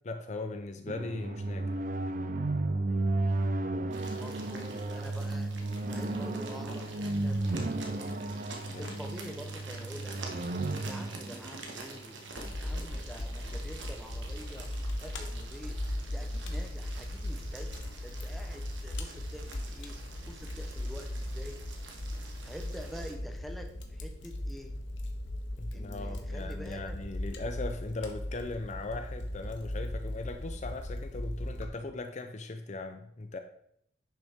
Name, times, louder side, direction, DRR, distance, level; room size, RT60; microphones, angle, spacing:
voice 1, 0.0-1.8 8.7-9.0 25.6-33.4, left 2 dB, 35° left, 7 dB, 0.5 m, -39 dB
sound 1, 0.9-12.5, right 2 dB, 45° right, 0.5 m, -33 dB
sound 2, 3.9-23.1, right 3 dB, 70° right, 1.4 m, -48 dB
voice 2, 4.2-8.1 8.8-10.4 10.8-12.2 12.5-14.7 15.0-15.8 16.1-19.9 20.2-21.6 22.4-24.7 25.7-27.0, equal, ahead, 4 dB, 0.8 m, -47 dB
Fire, 12.4-31.6, left 1 dB, 75° left, 1.1 m, -38 dB
10.5 x 6.0 x 3.6 m, 0.72 s
head